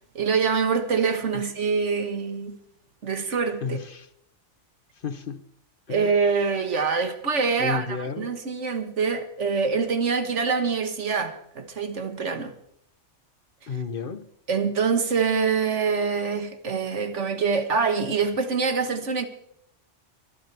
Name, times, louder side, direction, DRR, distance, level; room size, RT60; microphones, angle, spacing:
voice 1, 0.2-2.6 3.0-3.8 5.9-12.5 14.5-19.3, right 5 dB, 75° right, 1.8 m, -25 dB
voice 2, 3.6-4.1 5.0-5.4 5.9-6.1 7.6-8.3 13.7-14.3, left 5 dB, 50° left, 1.0 m, -32 dB
23.5 x 13.5 x 3.4 m
omnidirectional pair, 1.3 m